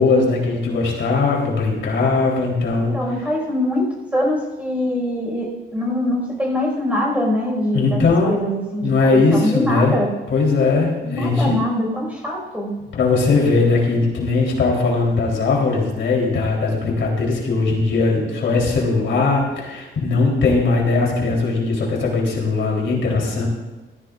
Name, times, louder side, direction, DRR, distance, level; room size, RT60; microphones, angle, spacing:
voice 1, 0.0-3.0 7.7-8.4 8.8-10.0 10.3-11.6 12.9-23.5, left 3 dB, 65° left, -3 dB, 3.6 m, -19 dB
voice 2, 2.9-8.0 8.3-10.1 11.0-12.7, left 1 dB, 5° right, -1 dB, 5.1 m, -23 dB
17.0 x 14.5 x 2.5 m, 1.2 s
cardioid pair, 120°, 21 cm